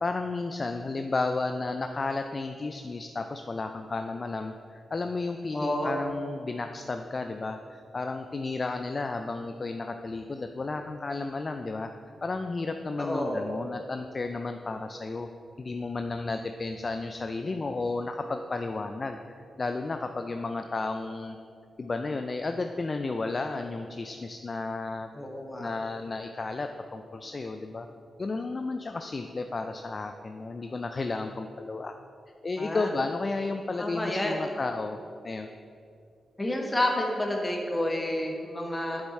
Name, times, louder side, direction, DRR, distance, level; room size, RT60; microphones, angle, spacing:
voice 1, 0.0-11.9 12.2-15.3 15.6-21.4 21.8-25.1 25.6-27.9 28.2-31.9 32.4-35.0 35.2-35.5, left 3 dB, 40° left, 6 dB, 0.3 m, -33 dB
voice 2, 5.5-6.0 13.0-13.4 25.1-25.7 32.6-32.9 33.8-34.5 36.4-39.0, left 1 dB, 20° left, 0 dB, 1.3 m, -29 dB
7.9 x 7.0 x 4.2 m, 2.5 s
cardioid pair, 90°, 0 cm